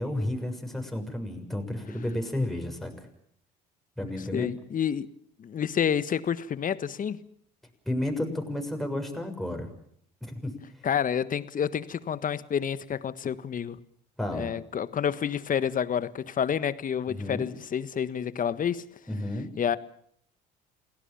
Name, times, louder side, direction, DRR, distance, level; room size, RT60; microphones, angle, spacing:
voice 1, 0.0-2.9 4.0-4.5 7.9-9.7 10.2-10.5 14.2-14.5 17.1-17.5 19.1-19.5, left 1 dB, ahead, 3 dB, 6.9 m, -32 dB
voice 2, 4.3-5.1 5.4-7.2 10.8-13.8 14.3-18.8 19.6-19.8, left 8 dB, 40° left, 15 dB, 1.4 m, -29 dB
28.5 x 18.0 x 7.4 m, 0.66 s
hypercardioid pair, 65°, 21 cm